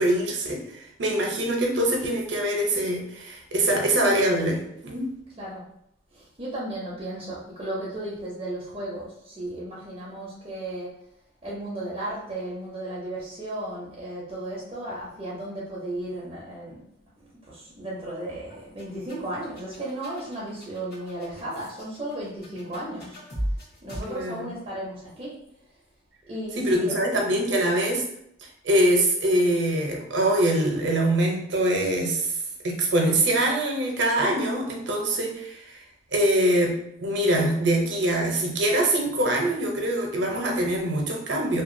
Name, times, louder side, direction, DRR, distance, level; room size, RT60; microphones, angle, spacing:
voice 1, 0.0-5.1 24.0-24.5 26.6-28.0 28.6-32.3 32.6-35.8 36.1-41.6, right 1 dB, 70° right, 0 dB, 0.6 m, -24 dB
voice 2, 6.1-10.9 11.4-16.8 17.2-23.2 23.8-25.4 26.3-26.9, right 1 dB, 30° right, -6 dB, 0.6 m, -35 dB
sound 1, 18.5-24.0, equal, 55° left, 1.3 m, -36 dB
2.8 x 2.3 x 2.6 m, 0.77 s
head